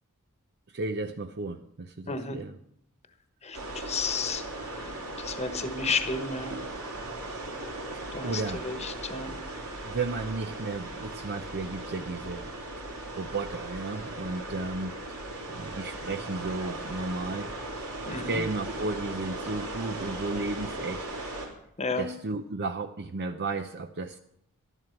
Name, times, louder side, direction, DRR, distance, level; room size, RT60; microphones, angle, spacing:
voice 1, 0.7-2.6 7.9-8.7 9.8-12.5 13.2-15.0 15.5-17.5 18.1-21.1 22.0-24.2, right 3 dB, 50° right, 8 dB, 0.6 m, -34 dB
voice 2, 2.1-2.4 3.4-4.4 4.7-6.6 8.1-9.4 18.0-18.4 21.8-22.1, left 4 dB, 30° left, 9 dB, 1.2 m, -32 dB
sound 1, 3.5-21.5, right 2 dB, 80° right, 3.2 m, -38 dB
12.5 x 11.0 x 5.9 m, 0.74 s
head